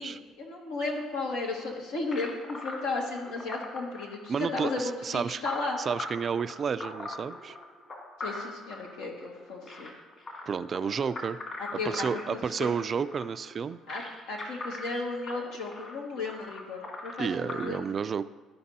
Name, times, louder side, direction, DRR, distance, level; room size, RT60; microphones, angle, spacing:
voice 1, 0.0-5.8 8.2-9.9 11.6-12.7 13.9-17.9, left 3 dB, 85° left, -1 dB, 1.6 m, -34 dB
sound 1, 2.1-17.7, left 2 dB, 40° left, 2.2 m, -41 dB
voice 2, 4.3-5.4 5.8-7.6 10.5-11.4 11.7-13.8 17.2-18.3, right 6 dB, 45° right, 14 dB, 0.3 m, -31 dB
13.0 x 5.2 x 2.8 m, 1.2 s
supercardioid pair, 80°, 0 cm